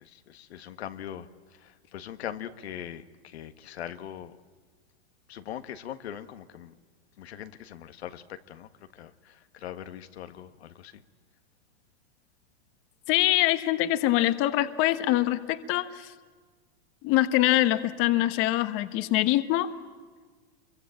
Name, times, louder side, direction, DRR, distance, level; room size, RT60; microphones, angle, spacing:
voice 1, 0.0-4.4 5.3-6.8 7.2-11.0, left 10 dB, 90° left, 9 dB, 1.7 m, -41 dB
voice 2, 13.1-16.1 17.0-19.7, left 15 dB, 40° left, 11 dB, 1.4 m, -24 dB
27.0 x 23.5 x 8.7 m, 1.5 s
supercardioid pair, 140°, 31 cm